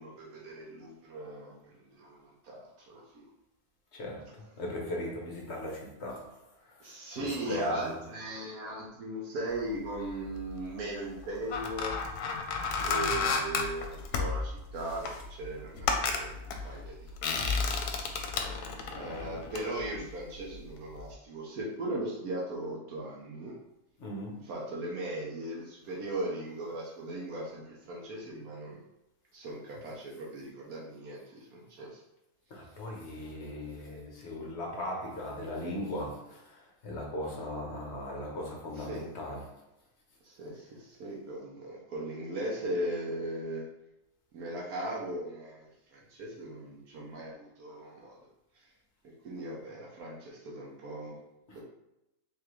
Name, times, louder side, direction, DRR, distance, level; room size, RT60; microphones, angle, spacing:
voice 1, 0.0-1.6 2.0-3.0 6.8-11.9 12.8-17.1 18.1-18.3 18.9-23.5 24.5-28.8 29.3-32.0 38.9-39.0 40.2-43.6 44.3-48.2 49.2-51.1, right 1 dB, 75° right, 1.3 m, -38 dB
voice 2, 3.9-6.9 7.2-8.0 24.0-24.4 32.5-39.6 51.5-51.6, left 1 dB, 50° left, 1.1 m, -38 dB
sound 1, 10.0-10.6 11.2-20.7 21.0-21.1, left 5 dB, 85° left, 1.1 m, -33 dB
3.7 x 3.3 x 3.0 m
omnidirectional pair, 1.6 m